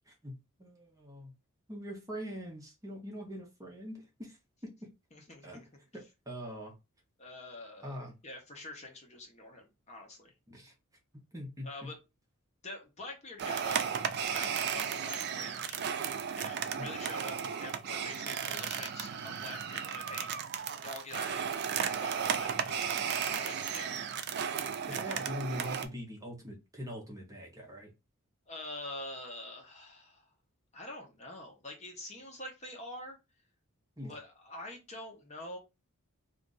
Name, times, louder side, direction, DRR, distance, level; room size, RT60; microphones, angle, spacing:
voice 1, 0.1-1.3 1.7-4.7 5.4-5.6 6.3-6.7 7.8-8.1 10.5-10.7 11.3-11.7 16.8-16.9 24.9-27.9 34.0-34.2, equal, 15° right, 0 dB, 0.7 m, -42 dB
voice 2, 5.1-5.7 7.2-10.3 11.6-12.0 12.6-13.8 14.3-15.8 16.4-20.3 20.8-22.9 23.2-24.0 24.9-25.2 28.5-30.3 30.7-33.2 34.1-35.6, left 2 dB, 30° left, 2 dB, 0.8 m, -46 dB
sound 1, 13.4-25.9, right 7 dB, 50° right, 0.4 m, -34 dB
2.5 x 2.4 x 3.8 m, 0.26 s
head